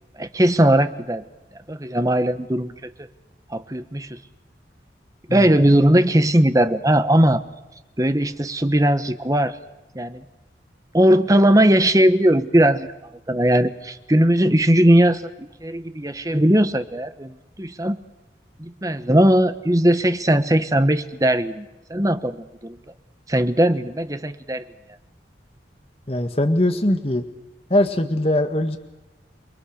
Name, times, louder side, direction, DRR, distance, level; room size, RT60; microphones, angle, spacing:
voice 1, 0.2-1.2 1.7-2.7 3.5-4.2 5.3-7.4 8.0-9.6 9.9-10.2 10.9-12.9 13.3-18.0 18.6-22.8 23.3-24.6, right 1 dB, 20° right, 10 dB, 1.2 m, -19 dB
voice 2, 26.1-27.2 27.7-28.8, left 1 dB, 35° left, 6 dB, 1.7 m, -21 dB
28.5 x 22.5 x 6.6 m, 1.0 s
head